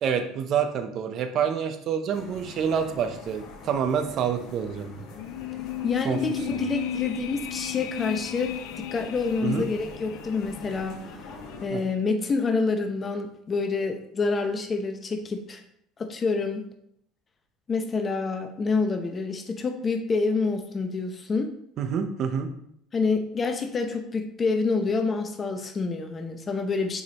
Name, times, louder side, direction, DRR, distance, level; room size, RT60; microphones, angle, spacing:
voice 1, 0.0-5.1 6.0-6.2 9.4-9.7 11.7-11.8 21.8-22.5, right 7 dB, 55° right, 7 dB, 0.8 m, -27 dB
sound 1, 2.1-11.7, left 4 dB, 60° left, 1.4 m, -44 dB
sound 2, 5.2-10.4 10.7-10.8, left 11 dB, 75° left, 0.3 m, -34 dB
voice 2, 5.8-11.0 11.6-15.6 16.0-16.6 17.7-21.5 22.9-27.0, left 4 dB, 30° left, 6 dB, 0.7 m, -27 dB
6.3 x 5.0 x 3.0 m, 0.72 s
hypercardioid pair, 80°, 0 cm